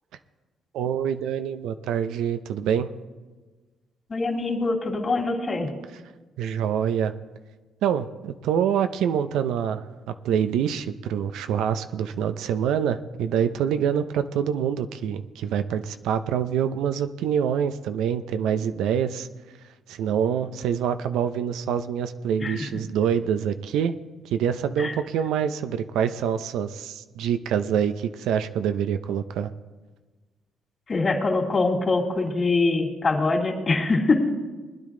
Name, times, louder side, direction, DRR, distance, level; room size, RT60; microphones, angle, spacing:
voice 1, 0.7-2.9 6.4-7.1 7.8-9.8 10.2-19.3 19.9-23.9 24.2-29.5, right 8 dB, 85° right, 10 dB, 0.6 m, -25 dB
voice 2, 4.1-5.7 22.4-22.5 24.8-24.9 30.9-34.3, left 3 dB, 35° left, -1 dB, 3.0 m, -23 dB
20.5 x 10.0 x 3.8 m, 1.3 s
cardioid pair, 90°, 0 cm